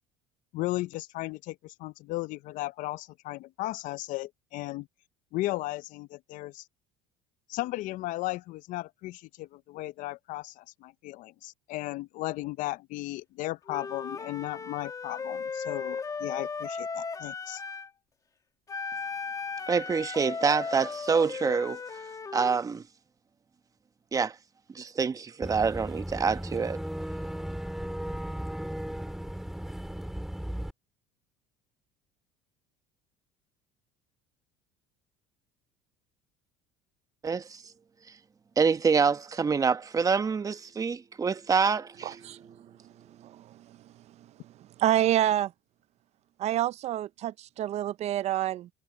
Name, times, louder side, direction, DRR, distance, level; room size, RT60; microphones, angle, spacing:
voice 1, 0.5-4.9 5.3-6.6 7.5-17.6, left 18 dB, 65° left, 0.6 m, -35 dB
Wind instrument woodwind instrument, 13.7-17.9 18.7-22.6, left 5 dB, 25° left, 2.0 m, -36 dB
voice 2, 19.7-22.0 22.3-22.8 24.1-24.3 24.7-26.8 37.2-37.6 38.6-42.5, right 5 dB, 25° right, 1.0 m, -26 dB
Boat Water vehicle / Engine, 25.4-30.7, equal, ahead, 2.7 m, -36 dB
voice 3, 42.0-42.4 43.2-43.8 44.8-45.5 46.4-48.7, right 12 dB, 50° right, 0.5 m, -28 dB
cardioid pair, 115°, 15 cm